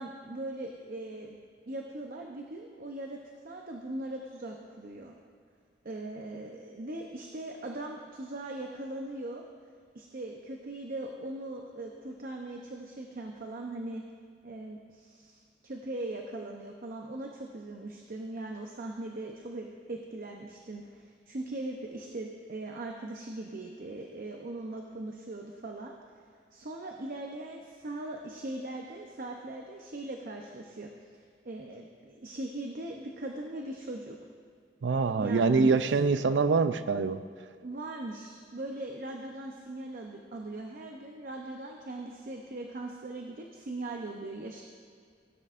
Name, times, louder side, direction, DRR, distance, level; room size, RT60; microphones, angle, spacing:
voice 1, 0.0-1.4 1.7-3.2 3.4-5.1 5.8-9.4 9.9-14.0 14.4-25.9 26.5-30.9 31.4-34.2 35.2-35.8 37.6-44.6, right 2 dB, 50° right, 1 dB, 0.7 m, -40 dB
voice 2, 34.8-37.2, right 4 dB, 90° right, 12 dB, 0.5 m, -25 dB
17.0 x 9.9 x 2.6 m, 2.2 s
head